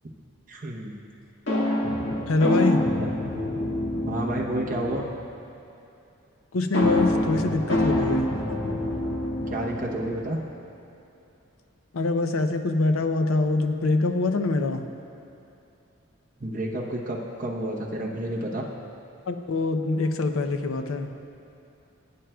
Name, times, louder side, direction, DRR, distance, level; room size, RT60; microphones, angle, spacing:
voice 1, 0.5-0.9 3.0-3.1 4.1-5.1 9.5-10.4 16.4-18.7, right 1 dB, 40° right, -3 dB, 0.9 m, -30 dB
sound 1, 1.5-5.2 6.7-10.3, left 1 dB, 60° left, 1.7 m, -26 dB
voice 2, 2.3-2.9 6.5-8.3 11.9-14.9 19.3-21.3, left 3 dB, 85° left, 7 dB, 0.6 m, -24 dB
16.5 x 8.8 x 2.3 m, 2.8 s
head